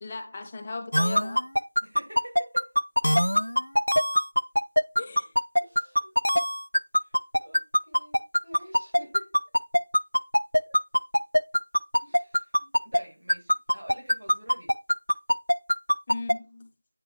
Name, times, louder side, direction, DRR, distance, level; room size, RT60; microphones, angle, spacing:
voice 1, 0.0-1.4 5.0-5.3 16.1-16.7, left 3 dB, 15° left, 0.4 m, -37 dB
sound 1, 0.9-13.0 13.3-16.3, equal, 75° left, 0.4 m, -22 dB
voice 2, 1.8-2.8 3.5-3.6 5.6-6.1 7.0-7.1 7.4-9.3 10.7-10.8 12.0-14.7, equal, 65° right, 2.7 m, -47 dB
8.8 x 3.7 x 3.1 m
figure-of-eight pair, 175°, 0 cm